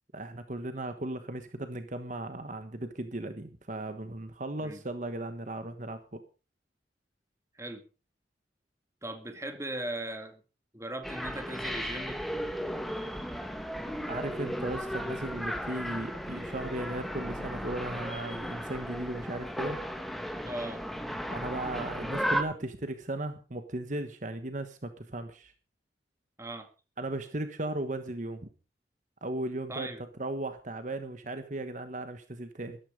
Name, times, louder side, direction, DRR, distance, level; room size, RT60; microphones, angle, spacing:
voice 1, 0.1-6.2 14.1-19.8 21.3-25.5 27.0-28.4 29.2-29.9 30.2-32.8, right 1 dB, 45° right, 9 dB, 1.3 m, -36 dB
voice 2, 9.0-10.4 10.7-12.2 20.5-20.8 26.4-26.7 29.7-30.0, right 1 dB, 15° right, 7 dB, 2.2 m, -38 dB
sound 1, 11.0-22.4, equal, ahead, 1.7 m, -35 dB
14.0 x 13.0 x 5.2 m, 0.34 s
head